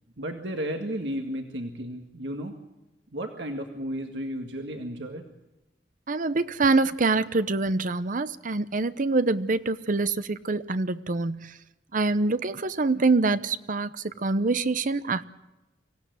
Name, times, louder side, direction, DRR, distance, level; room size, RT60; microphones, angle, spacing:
voice 1, 0.2-2.5 3.1-5.2, equal, 75° right, 1.8 m, -33 dB
voice 2, 6.1-11.5 11.9-13.9 14.2-15.2, right 3 dB, 50° right, 0.8 m, -25 dB
25.0 x 16.0 x 9.4 m
head